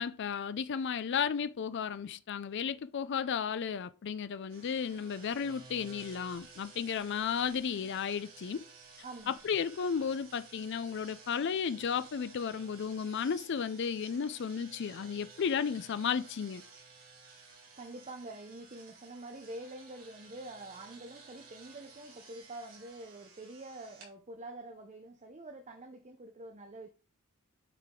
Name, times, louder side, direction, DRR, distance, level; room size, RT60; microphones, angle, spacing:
voice 1, 0.0-8.6 9.3-16.6, left 7 dB, 55° left, 0.4 m, -34 dB
sound 1, 4.5-24.1, right 4 dB, 70° right, 3.5 m, -54 dB
voice 2, 9.0-9.4 17.7-26.9, right 2 dB, 35° right, 0.7 m, -46 dB
9.1 x 4.9 x 3.7 m
head